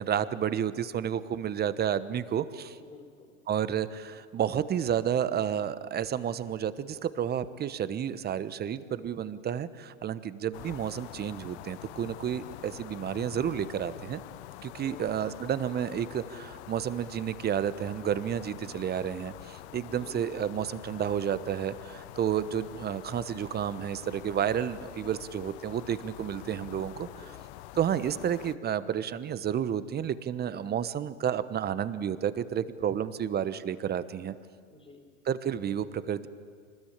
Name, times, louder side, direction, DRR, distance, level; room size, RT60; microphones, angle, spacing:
voice 1, 0.0-2.8 3.5-14.2 14.6-27.1 27.8-34.3 35.3-36.3, right 9 dB, 25° right, 14 dB, 1.1 m, -31 dB
voice 2, 2.7-3.4 14.7-15.4 19.9-20.2 27.0-27.4 34.7-35.1, left 3 dB, 15° left, 3 dB, 3.6 m, -52 dB
sound 1, 10.5-28.6, left 16 dB, 55° left, 0.8 m, -46 dB
25.0 x 20.5 x 8.8 m, 2.1 s
hypercardioid pair, 100°, 41 cm